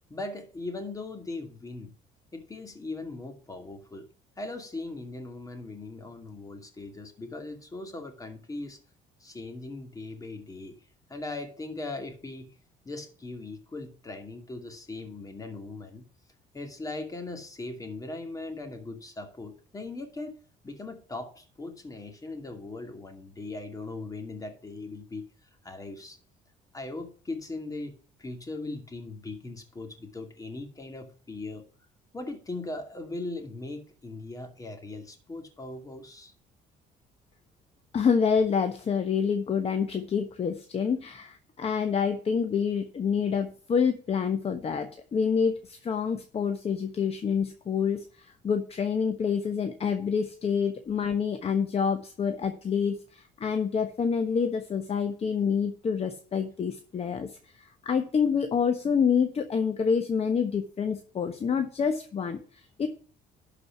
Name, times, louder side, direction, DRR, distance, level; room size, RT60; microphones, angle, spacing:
voice 1, 0.1-1.9 2.3-4.1 4.4-8.8 9.2-10.7 11.1-12.6 12.8-16.1 16.5-20.3 20.6-25.3 25.6-26.2 26.7-31.7 32.1-36.3, left 2 dB, 20° left, 5 dB, 2.5 m, -39 dB
voice 2, 37.9-62.9, left 6 dB, 35° left, 7 dB, 1.1 m, -27 dB
11.5 x 5.0 x 6.0 m, 0.41 s
cardioid pair, 110°, 17 cm